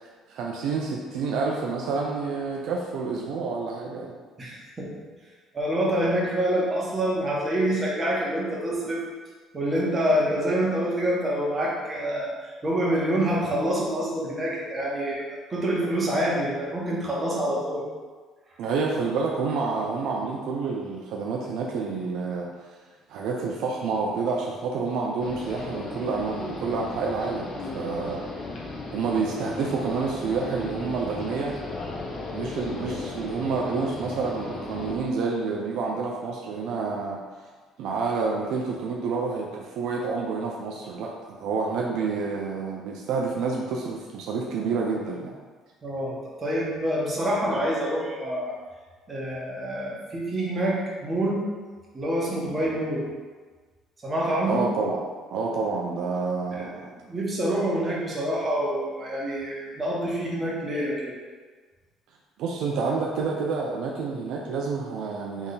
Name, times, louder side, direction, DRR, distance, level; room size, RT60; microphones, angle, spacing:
voice 1, 0.0-4.1 18.6-22.5 23.1-28.2 28.9-31.5 32.3-37.2 37.8-45.3 54.5-55.0 55.3-56.9 62.4-65.5, right 4 dB, 75° right, -1 dB, 0.5 m, -28 dB
voice 2, 4.4-4.9 5.5-9.0 9.5-15.2 15.5-17.8 45.8-48.5 49.1-51.4 51.9-53.1 54.0-54.6 56.5-56.7 57.1-61.1, right 1 dB, 25° right, -5 dB, 1.4 m, -26 dB
sound 1, 25.2-34.9, left 2 dB, 50° left, 0.7 m, -36 dB
3.6 x 3.4 x 4.1 m, 1.4 s
cardioid pair, 100°, 0 cm